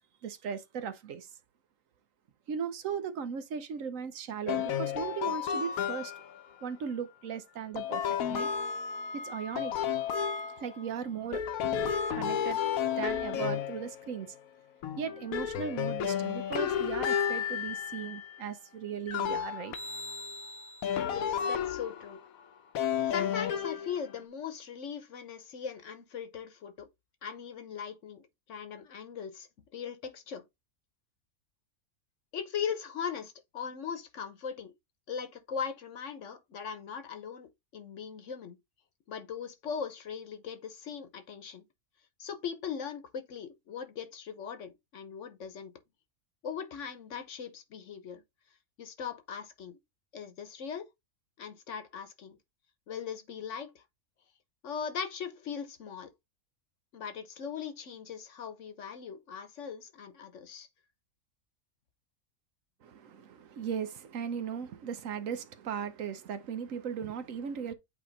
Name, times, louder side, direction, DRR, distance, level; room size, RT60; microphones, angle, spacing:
voice 1, 0.2-1.3 2.5-6.1 6.6-8.5 9.1-9.7 10.6-12.6 13.0-14.3 15.0-19.7 62.8-67.7, right 7 dB, 70° right, 1.1 m, -37 dB
sound 1, 4.5-6.4 7.8-10.9 11.3-14.4 14.8-18.4 19.1-22.2 22.7-24.2, left 8 dB, 80° left, 1.2 m, -32 dB
voice 2, 21.1-22.2 23.1-26.9 27.2-29.5 29.7-30.4 32.3-34.7 35.1-38.6 39.1-41.6 42.2-45.7 46.4-48.2 48.8-49.8 50.1-50.8 51.4-52.4 52.9-53.8 54.6-56.1 56.9-60.7, left 7 dB, 60° left, 1.1 m, -39 dB
8.4 x 2.9 x 3.9 m
omnidirectional pair, 1.5 m